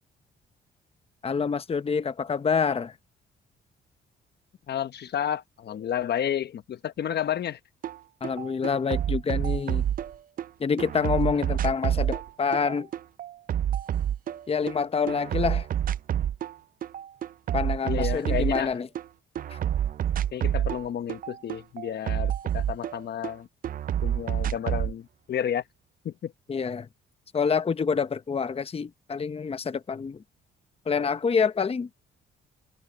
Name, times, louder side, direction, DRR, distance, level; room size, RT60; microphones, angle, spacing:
voice 1, 1.2-2.9 8.2-9.8 10.6-12.9 14.5-15.7 17.5-18.9 19.5-19.6 26.5-26.9 27.3-30.2 30.9-31.9, left 5 dB, 30° left, 0.9 m, -27 dB
voice 2, 4.7-7.6 17.8-18.8 20.3-23.5 24.0-25.6 26.0-26.3, left 9 dB, 55° left, 1.0 m, -31 dB
sound 1, 7.8-8.0 8.2-10.5 10.8-14.8 15.1-16.5 16.8-19.1 19.4-23.3 23.6-24.9, right 10 dB, 45° right, 0.4 m, -28 dB
cardioid pair, 90°, 20 cm